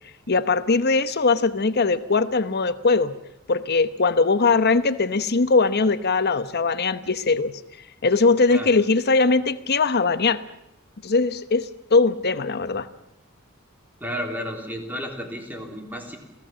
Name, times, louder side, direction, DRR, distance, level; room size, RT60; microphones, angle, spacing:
voice 1, 0.3-3.1 3.5-7.5 8.0-10.4 11.0-12.9, left 4 dB, 50° left, 13 dB, 1.0 m, -20 dB
voice 2, 14.0-16.2, equal, 10° right, 3 dB, 3.5 m, -32 dB
27.5 x 17.0 x 7.6 m, 0.84 s
head